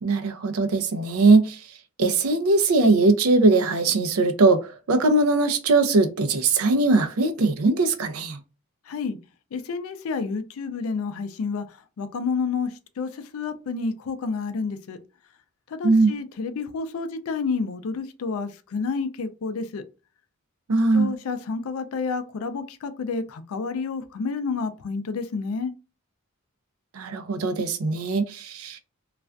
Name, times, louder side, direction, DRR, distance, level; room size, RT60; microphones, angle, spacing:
voice 1, 0.0-1.6 2.0-8.4 15.8-16.1 20.7-21.1 26.9-28.8, right 3 dB, 85° right, 0.5 m, -20 dB
voice 2, 8.9-9.2 9.5-11.6 12.0-15.0 15.7-19.8 20.9-25.7, left 4 dB, 75° left, 0.4 m, -29 dB
2.4 x 2.2 x 2.4 m
head